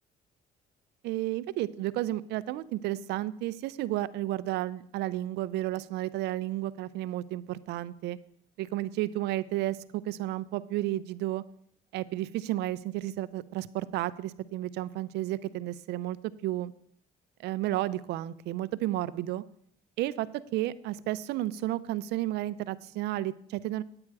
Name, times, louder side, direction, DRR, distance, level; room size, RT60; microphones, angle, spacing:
voice 1, 1.0-8.2 8.6-11.4 11.9-16.7 17.4-19.4 20.0-23.8, right 15 dB, 80° right, 15 dB, 0.5 m, -32 dB
9.7 x 8.8 x 4.7 m, 0.66 s
cardioid pair, 110°, 17 cm